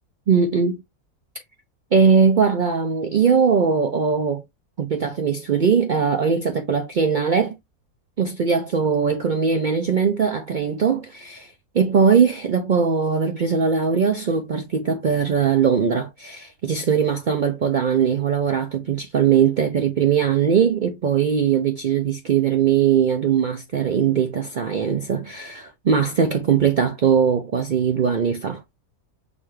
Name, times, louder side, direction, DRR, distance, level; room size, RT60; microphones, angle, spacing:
voice 1, 0.3-0.8 1.9-4.4 4.8-7.5 8.2-28.6, right 6 dB, 90° right, 0.4 m, -20 dB
6.1 x 2.4 x 3.1 m
omnidirectional pair, 1.6 m